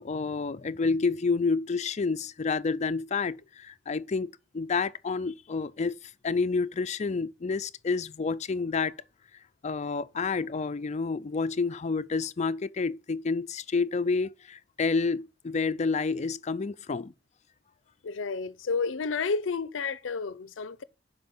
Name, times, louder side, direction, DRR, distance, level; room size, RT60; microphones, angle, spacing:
voice 1, 0.0-8.9 9.6-17.1, left 4 dB, 35° left, 0.4 m, -29 dB
voice 2, 18.0-20.8, left 4 dB, 85° left, 0.5 m, -31 dB
7.7 x 5.5 x 7.1 m
head